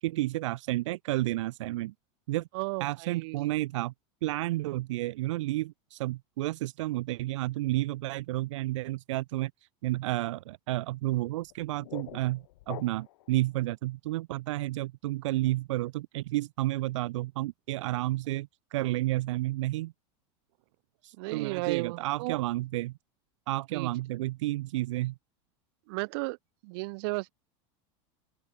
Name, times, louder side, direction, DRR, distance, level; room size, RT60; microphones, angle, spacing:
voice 1, 0.0-1.9 2.3-2.5 2.8-3.9 4.2-9.5 9.8-19.9 21.0-22.9 23.5-25.1, right 17 dB, 80° right, 1.1 m, -31 dB
voice 2, 2.5-3.4 21.2-22.4 23.7-23.9 25.9-26.4 26.6-27.3, right 28 dB, 55° right, 5.5 m, -34 dB
sound 1, 11.4-13.3, left 18 dB, 70° left, 4.2 m, -45 dB
open air
supercardioid pair, 175°, 15 cm